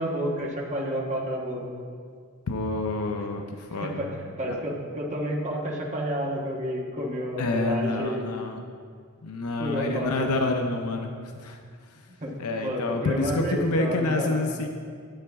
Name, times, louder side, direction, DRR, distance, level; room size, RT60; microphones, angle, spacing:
voice 1, 0.0-1.6 3.8-4.1 4.4-8.3 9.6-10.5 12.2-12.3 12.6-14.5, equal, 35° right, -2 dB, 1.4 m, -30 dB
voice 2, 2.5-4.2 4.5-4.6 7.4-8.6 9.2-11.6 12.4-14.7, left 2 dB, 90° left, 4 dB, 0.6 m, -28 dB
9.8 x 8.6 x 3.5 m, 2.1 s
head